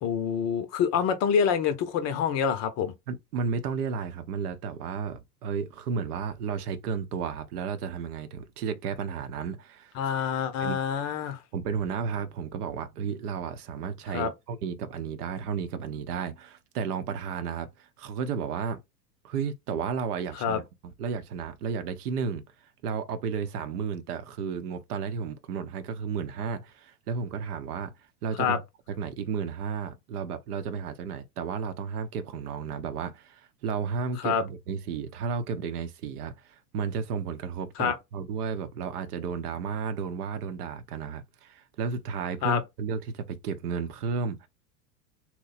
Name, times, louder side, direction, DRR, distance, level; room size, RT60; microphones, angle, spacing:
voice 1, 0.0-2.9 9.9-11.4 14.1-14.3 20.3-20.6 28.4-28.6 34.2-34.4 37.8-37.9 42.4-42.6, left 7 dB, 35° left, 0.6 m, -26 dB
voice 2, 3.1-9.9 10.6-10.8 11.5-18.8 19.2-22.4 22.8-27.9 28.2-28.6 28.9-44.5, right 6 dB, 65° right, 0.7 m, -33 dB
2.9 x 2.1 x 3.9 m
hypercardioid pair, 95°, 49 cm